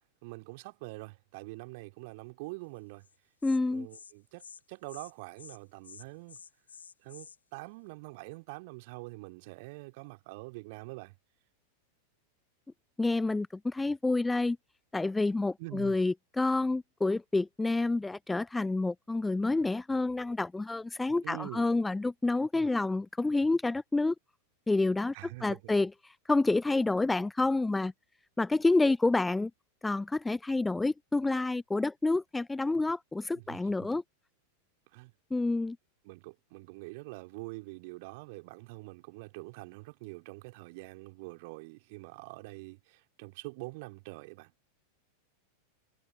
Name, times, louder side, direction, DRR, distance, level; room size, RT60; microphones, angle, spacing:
voice 1, 0.2-3.1 3.7-6.4 7.0-11.1 15.6-16.0 21.2-21.7 25.1-25.7 33.3-33.9 34.9-35.1 36.0-44.5, right 26 dB, 50° right, 3.1 m, -45 dB
Insect, 3.0-3.2 3.4-3.6 3.9-4.1 4.4-4.6 4.9-5.1 5.4-5.6 5.8-7.4, left 6 dB, 70° left, 2.1 m, -50 dB
voice 2, 3.4-3.9 13.0-14.6 14.9-24.1 24.7-25.1 25.4-27.9 28.4-29.5 29.8-34.0 35.3-35.8, left 2 dB, 10° left, 0.4 m, -28 dB
figure-of-eight pair, 90°, 0 cm